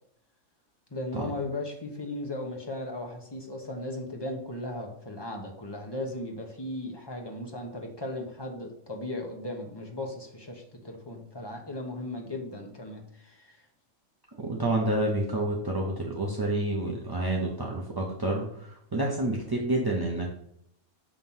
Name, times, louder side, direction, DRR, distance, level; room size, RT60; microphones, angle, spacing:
voice 1, 0.9-13.6, left 1 dB, 20° left, 1 dB, 0.9 m, -37 dB
voice 2, 14.3-20.3, right 1 dB, 25° right, -2 dB, 0.5 m, -29 dB
7.0 x 3.0 x 5.5 m, 0.71 s
omnidirectional pair, 1.5 m